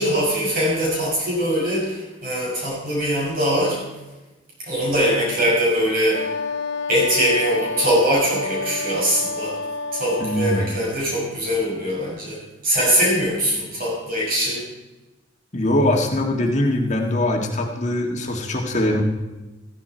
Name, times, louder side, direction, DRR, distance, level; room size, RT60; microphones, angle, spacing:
voice 1, 0.0-3.8 4.7-6.3 6.9-9.6 9.9-12.4 12.6-14.6, equal, 50° right, -5 dB, 6.1 m, -22 dB
Wind instrument woodwind instrument, 6.1-10.8, left 3 dB, 75° left, 1.0 m, -29 dB
voice 2, 10.2-10.8 15.5-19.0, left 1 dB, 40° left, 2 dB, 1.8 m, -22 dB
15.5 x 15.5 x 4.4 m, 1.1 s
head